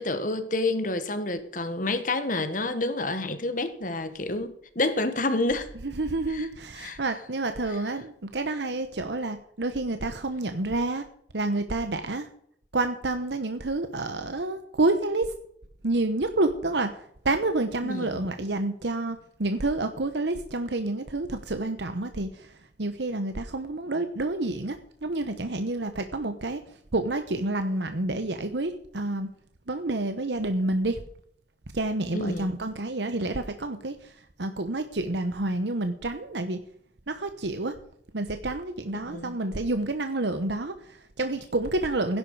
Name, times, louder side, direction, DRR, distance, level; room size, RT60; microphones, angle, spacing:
voice 1, 0.0-5.7 6.3-6.5 6.8-7.0 17.8-18.2 32.1-32.5 39.1-39.4, left 2 dB, 50° left, 1.6 m, -29 dB
voice 2, 5.8-11.0 11.3-12.3 12.7-15.3 15.8-26.6 26.9-29.3 29.7-31.0 31.7-36.6 37.1-37.7 38.1-42.2, right 2 dB, 75° right, 1.1 m, -29 dB
17.0 x 11.0 x 4.9 m
head